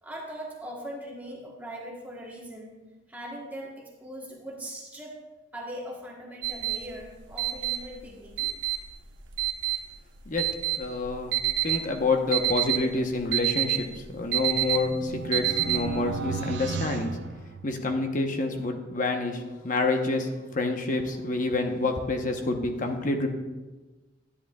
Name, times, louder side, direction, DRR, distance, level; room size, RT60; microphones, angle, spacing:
voice 1, 0.0-2.8 3.1-5.2 5.5-8.6, equal, 10° right, -3 dB, 1.2 m, -40 dB
sound 1, 6.4-16.2, right 14 dB, 80° right, 0.8 m, -28 dB
voice 2, 10.8-11.3 11.6-13.8 14.1-17.2 17.6-20.3 20.5-23.3, left 3 dB, 45° left, 4 dB, 0.9 m, -28 dB
sound 2, 14.1-18.1, right 5 dB, 65° right, 0.3 m, -35 dB
11.0 x 10.0 x 2.3 m, 1.2 s
head